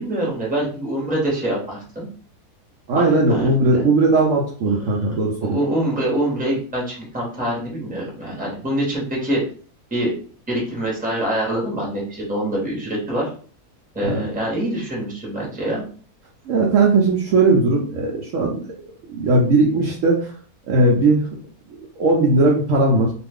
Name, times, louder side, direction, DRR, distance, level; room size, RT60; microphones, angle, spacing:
voice 1, 0.0-2.1 2.9-3.8 4.8-9.4 9.9-10.1 10.5-13.3 13.9-15.8, right 1 dB, 5° right, -3 dB, 0.9 m, -25 dB
voice 2, 2.9-5.6 14.0-14.2 16.5-18.6 19.1-20.3 20.7-21.3 21.8-23.1, right 2 dB, 65° right, -2 dB, 0.9 m, -18 dB
2.5 x 2.5 x 3.4 m, 0.43 s
omnidirectional pair, 1.6 m